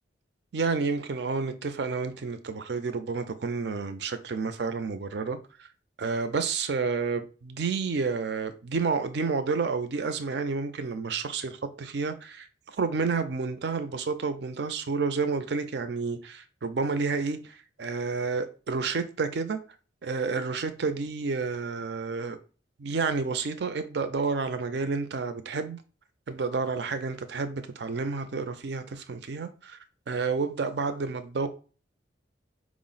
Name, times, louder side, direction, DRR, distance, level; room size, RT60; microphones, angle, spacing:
voice 1, 0.5-5.7 6.0-19.6 20.0-22.4 22.8-25.8 26.3-29.8 30.1-31.5, right 4 dB, 60° right, 0.5 m, -30 dB
4.7 x 2.0 x 3.8 m
head